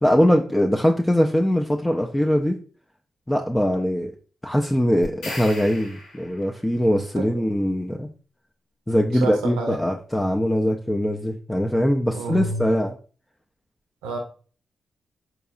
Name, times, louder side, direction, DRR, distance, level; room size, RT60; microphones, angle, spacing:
voice 1, 0.0-2.6 3.3-4.1 4.4-8.1 8.9-13.0, equal, 15° left, 2 dB, 0.4 m, -22 dB
sound 1, 5.0-6.6, left 1 dB, 90° left, 1.2 m, -37 dB
voice 2, 9.1-9.8 12.1-12.7 14.0-14.2, right 3 dB, 90° right, 3 dB, 0.5 m, -29 dB
3.9 x 2.8 x 2.4 m, 0.39 s
hypercardioid pair, 40°, 0 cm